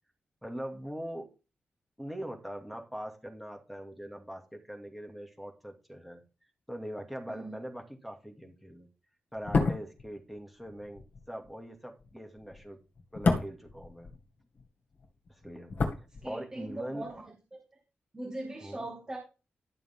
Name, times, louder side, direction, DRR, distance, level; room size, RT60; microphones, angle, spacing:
voice 1, 0.4-1.3 2.0-6.2 6.7-8.9 9.3-12.8 13.1-14.1 15.3-17.1 18.6-18.9, equal, ahead, 2 dB, 2.3 m, -42 dB
sound 1, 9.4-14.7 14.9-16.8 17.0-17.2, left 3 dB, 50° left, 2.2 m, -32 dB
voice 2, 16.2-17.3 18.1-19.2, right 2 dB, 15° right, -1 dB, 2.4 m, -40 dB
12.0 x 7.0 x 3.6 m, 0.31 s
wide cardioid pair, 160°, 4 cm